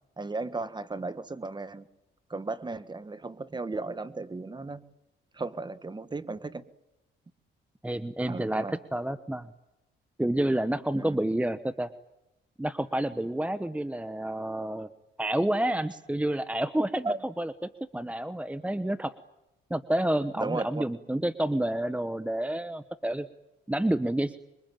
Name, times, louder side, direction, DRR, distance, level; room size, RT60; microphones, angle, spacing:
voice 1, 0.2-1.9 2.3-4.8 5.3-6.6 8.3-8.8 10.9-11.2 17.0-17.2 20.3-20.8, right 3 dB, 20° right, 13 dB, 1.5 m, -35 dB
voice 2, 7.8-9.5 10.2-11.9 12.6-14.9 15.2-19.1 19.7-23.3 23.7-24.4, right 1 dB, 5° right, 12 dB, 1.0 m, -29 dB
26.5 x 23.0 x 9.2 m, 0.96 s
cardioid pair, 90°, 20 cm